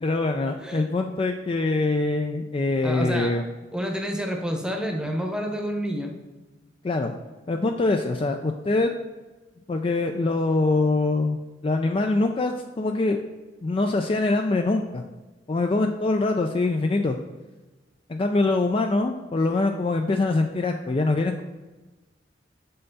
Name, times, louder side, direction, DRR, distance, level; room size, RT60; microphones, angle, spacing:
voice 1, 0.0-3.5 6.8-7.1 7.5-8.9 9.7-13.2 13.6-15.0 15.5-17.2 18.1-21.4, left 2 dB, 30° left, 4 dB, 0.4 m, -24 dB
voice 2, 2.8-3.4 3.7-6.2, equal, 5° right, 3 dB, 0.9 m, -29 dB
6.7 x 5.6 x 4.0 m, 1.2 s
head